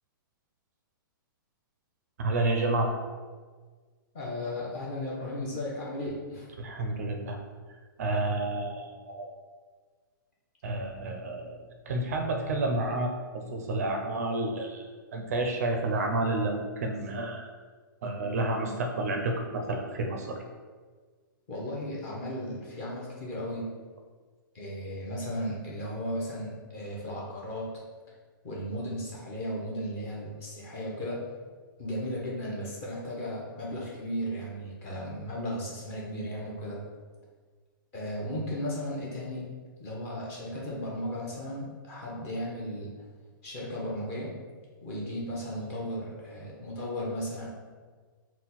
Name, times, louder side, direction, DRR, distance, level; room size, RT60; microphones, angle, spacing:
voice 1, 2.2-2.9 6.6-7.4 8.0-9.3 10.6-11.6 11.9-14.9 15.1-17.5 18.0-20.4, right 2 dB, 45° right, 3 dB, 0.4 m, -30 dB
voice 2, 4.1-6.5 21.5-23.7 24.5-27.8 28.4-31.2 31.8-36.8 37.9-39.5 39.8-42.9 43.4-44.4 44.8-47.5, equal, 20° left, -4 dB, 0.6 m, -35 dB
4.2 x 2.1 x 3.9 m, 1.5 s
hypercardioid pair, 175°, 12 cm